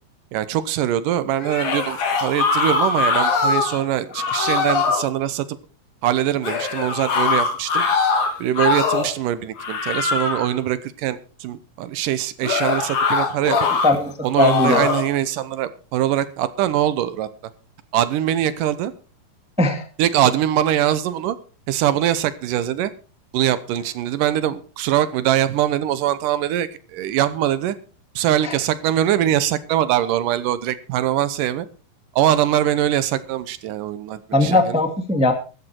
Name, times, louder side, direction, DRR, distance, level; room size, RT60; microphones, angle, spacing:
voice 1, 0.3-5.6 6.0-7.8 8.4-13.6 14.2-17.3 17.9-18.9 20.0-21.4 21.7-22.9 23.3-27.8 28.2-31.7 32.1-34.8, right 12 dB, 80° right, 14 dB, 2.4 m, -22 dB
sound 1, 1.4-3.8 4.1-5.1 6.4-9.2 9.6-10.5 12.4-13.9 14.3-15.1, left 4 dB, 65° left, 3.8 m, -21 dB
voice 2, 13.5-14.8 19.6-19.8 28.4-28.5 34.3-35.3, left 2 dB, 5° right, 6 dB, 1.0 m, -19 dB
14.5 x 12.0 x 4.5 m, 0.35 s
omnidirectional pair, 3.9 m